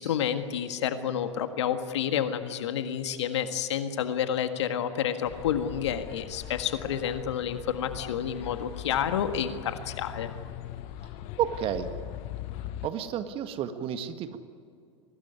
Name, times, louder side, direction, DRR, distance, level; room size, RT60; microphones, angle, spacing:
voice 1, 0.0-10.3, left 9 dB, 65° left, 8 dB, 1.7 m, -29 dB
sound 1, 5.2-12.9, left 12 dB, 45° left, 1.2 m, -40 dB
voice 2, 11.4-11.9 12.8-14.4, right 10 dB, 35° right, 9 dB, 1.6 m, -31 dB
23.5 x 18.5 x 9.7 m, 2.3 s
hypercardioid pair, 100°, 16 cm